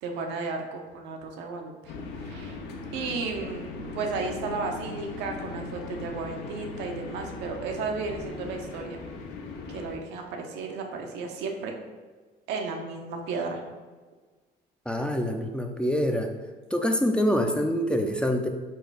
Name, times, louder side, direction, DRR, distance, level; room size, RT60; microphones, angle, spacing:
voice 1, 0.0-1.9 2.2-2.6 2.9-3.7 3.9-9.0 9.7-11.7 12.5-13.6, right 4 dB, 85° right, 3 dB, 0.7 m, -33 dB
sound 1, 1.9-9.9, left 3 dB, 80° left, 0.6 m, -39 dB
voice 2, 14.9-16.3 16.7-18.5, equal, 5° left, 4 dB, 0.3 m, -25 dB
4.4 x 2.4 x 4.6 m, 1.3 s
cardioid pair, 110°, 17 cm